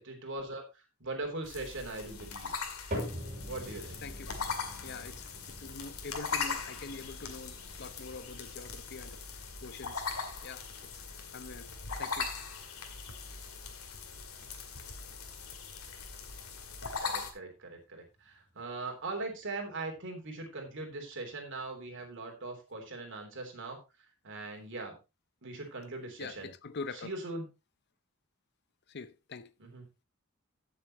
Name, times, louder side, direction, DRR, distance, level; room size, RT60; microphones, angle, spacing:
voice 1, 0.0-2.5 3.5-4.0 17.0-23.8 24.2-25.0 25.4-26.5 27.0-27.5 29.6-29.8, right 2 dB, 60° right, 3.4 m, -40 dB
sound 1, 1.4-17.3, left 5 dB, 80° left, 2.2 m, -40 dB
sound 2, 2.9-19.2 19.6-20.1 20.7-20.8 21.6-21.7, equal, 35° right, 6.1 m, -47 dB
voice 2, 4.8-5.3 5.6-10.1 10.4-11.0 11.3-11.7 12.0-12.3 26.2-27.1 28.9-29.5, left 4 dB, 50° left, 0.7 m, -44 dB
15.5 x 6.9 x 3.0 m
head